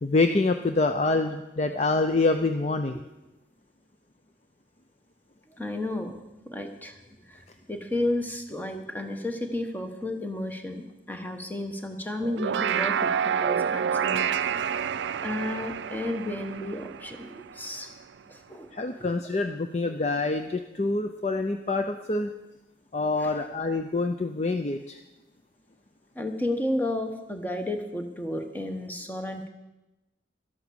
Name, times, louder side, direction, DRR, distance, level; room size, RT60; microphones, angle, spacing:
voice 1, 0.0-3.0 18.7-22.3 22.9-25.0, left 3 dB, 35° left, 7 dB, 0.6 m, -26 dB
voice 2, 5.6-14.7 15.2-17.9 18.3-18.7 19.0-19.1 23.2-23.3 26.1-29.5, left 1 dB, 10° left, 5 dB, 1.2 m, -32 dB
sound 1, 12.2-17.8, right 7 dB, 75° right, 0.4 m, -28 dB
12.5 x 11.0 x 7.0 m, 1.0 s
head